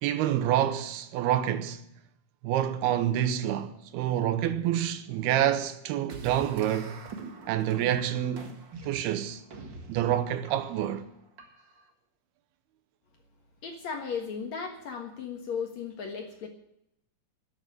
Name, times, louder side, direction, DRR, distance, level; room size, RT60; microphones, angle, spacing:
voice 1, 0.0-1.8 2.4-7.0 7.5-8.6 8.8-9.4 9.9-11.1, right 11 dB, 90° right, 2.8 m, -27 dB
sound 1, 6.1-11.9, right 3 dB, 50° right, 1.3 m, -45 dB
voice 2, 13.6-16.5, left 6 dB, 55° left, 2.3 m, -36 dB
13.0 x 9.1 x 10.0 m
omnidirectional pair, 4.5 m